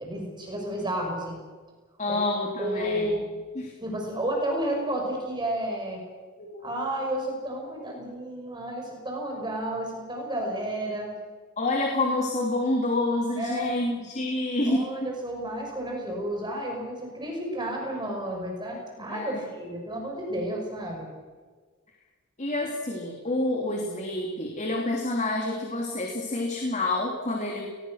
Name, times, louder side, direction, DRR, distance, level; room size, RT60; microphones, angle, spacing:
voice 1, 0.0-1.4 2.1-2.2 2.6-3.2 3.8-6.0 6.6-11.2 13.4-14.0 14.7-21.1, right 1 dB, 20° right, 1 dB, 6.0 m, -31 dB
voice 2, 2.0-3.2 3.5-3.7 6.4-6.6 11.6-14.9 19.1-19.4 22.4-27.7, left 2 dB, 35° left, 1 dB, 3.0 m, -28 dB
28.5 x 20.5 x 6.5 m, 1.4 s
head